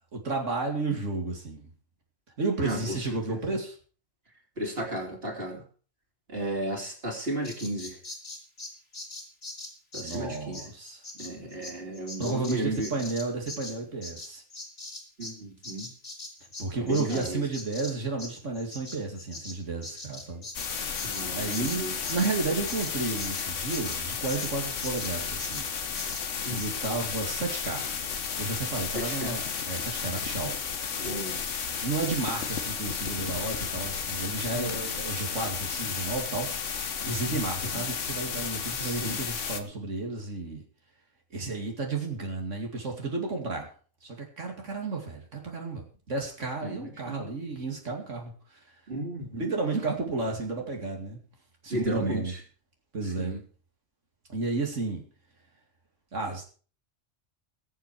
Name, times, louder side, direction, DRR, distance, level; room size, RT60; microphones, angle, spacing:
voice 1, 0.1-1.7 2.4-3.8 10.0-11.1 12.2-14.4 16.6-20.5 21.3-25.7 26.5-27.9 28.4-30.6 31.8-36.5 37.0-40.6 41.3-43.7 44.0-48.6 49.3-51.2 51.6-52.3 52.9-53.4 54.3-55.0 56.1-56.4, right 3 dB, 80° right, 1 dB, 2.8 m, -32 dB
voice 2, 2.6-3.0 3.3-3.4 4.6-5.6 6.3-8.0 9.9-10.6 11.2-12.9 15.2-15.9 16.8-17.4 21.0-21.9 26.4-26.6 28.9-29.4 31.0-31.4 34.5-34.7 37.3-37.4 38.8-39.2 46.6-46.8 47.1-47.2 48.9-49.4 51.7-52.2 53.2-53.4, right 1 dB, 50° right, 0 dB, 3.8 m, -34 dB
Bird vocalization bird call bird song, 7.4-15.4 15.6-24.5 24.8-25.1 25.4-25.7 26.0-26.2 26.6-26.7, left 2 dB, 55° left, 2.9 m, -42 dB
sound 1, 20.5-39.6, left 6 dB, 80° left, 1.5 m, -33 dB
20.0 x 7.6 x 4.8 m, 0.40 s
omnidirectional pair, 1.3 m